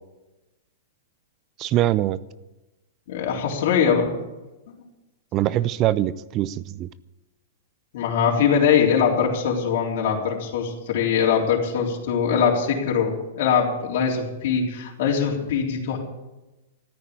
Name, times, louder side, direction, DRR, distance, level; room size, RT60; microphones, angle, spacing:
voice 1, 1.6-2.2 5.3-6.9, right 13 dB, 30° right, 0.5 m, -23 dB
voice 2, 3.1-4.1 4.7-4.8 7.9-16.0, left 7 dB, 55° left, 3.7 m, -22 dB
14.0 x 9.9 x 8.7 m
hypercardioid pair, 155°, 0 cm